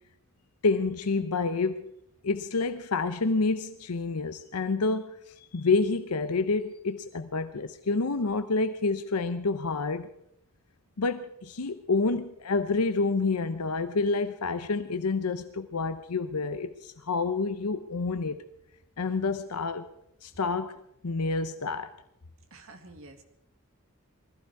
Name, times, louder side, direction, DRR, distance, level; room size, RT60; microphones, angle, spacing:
voice 1, 0.6-1.8 2.2-5.2 5.5-10.1 11.0-18.4 19.0-19.9 20.2-20.8 21.0-21.9, left 3 dB, 90° left, 0.7 m, -28 dB
voice 2, 22.5-23.2, right 2 dB, 65° right, 2.0 m, -49 dB
20.5 x 14.5 x 4.7 m
head